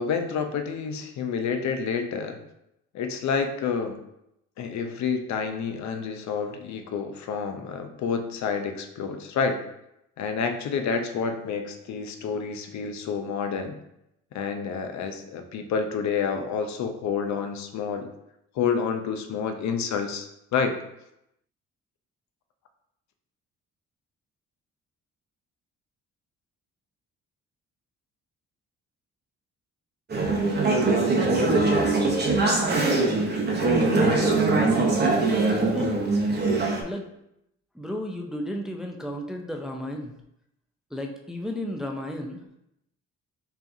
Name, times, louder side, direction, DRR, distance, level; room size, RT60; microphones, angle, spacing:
voice 1, 0.0-2.4 2.9-4.0 4.6-9.6 10.2-13.8 14.3-18.1 18.6-20.8, left 6 dB, 65° left, 6 dB, 0.6 m, -29 dB
Conversation / Chatter, 30.1-36.8, right 3 dB, 35° right, 0.8 m, -22 dB
voice 2, 35.5-36.0 36.8-37.1 37.7-40.1 40.9-42.4, left 1 dB, ahead, 2 dB, 0.4 m, -33 dB
5.6 x 2.4 x 2.6 m, 0.81 s
cardioid pair, 90°, 30 cm